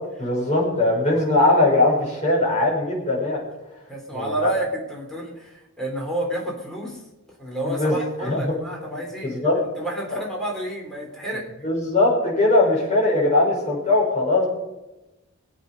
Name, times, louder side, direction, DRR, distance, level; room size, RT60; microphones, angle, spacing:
voice 1, 0.2-3.4 4.1-4.5 7.6-8.5 9.2-9.6 10.1-10.2 11.6-14.5, left 2 dB, 35° left, -3 dB, 5.8 m, -20 dB
voice 2, 3.9-7.0 7.4-9.5 9.8-11.5, right 1 dB, ahead, -2 dB, 3.9 m, -30 dB
23.5 x 8.3 x 5.5 m, 0.99 s
head